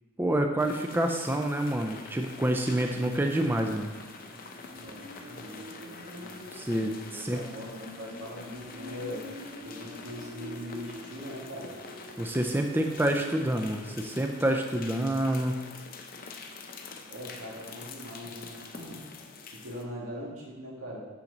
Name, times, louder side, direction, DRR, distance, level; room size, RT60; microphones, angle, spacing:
voice 1, 0.2-3.9 6.5-7.4 12.2-15.6, right 1 dB, 10° right, 4 dB, 0.3 m, -28 dB
sound 1, 0.6-19.8, left 4 dB, 45° left, 0.6 m, -46 dB
sound 2, 2.2-20.3, equal, 65° right, 1.4 m, -49 dB
voice 2, 4.7-6.4 7.1-9.3 9.6-11.7 17.1-19.0 19.5-21.1, equal, 85° right, -3 dB, 1.9 m, -41 dB
7.2 x 5.8 x 3.9 m, 1.3 s
head